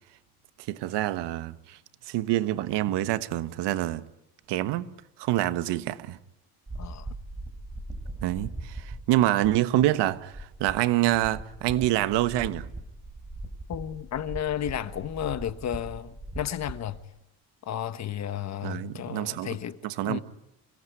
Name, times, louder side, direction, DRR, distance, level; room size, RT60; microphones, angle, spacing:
voice 1, 0.7-1.8 2.1-4.0 4.5-4.9 5.2-6.2 8.2-12.7 18.6-19.6 19.8-20.2, right 14 dB, 80° right, 1.3 m, -26 dB
sound 1, 6.7-17.0, right 2 dB, 15° right, 3.7 m, -40 dB
voice 2, 6.8-7.1 13.7-17.0 17.6-19.8 20.0-20.2, left 10 dB, 40° left, 1.3 m, -33 dB
27.5 x 18.5 x 9.7 m
cardioid pair, 155°, 41 cm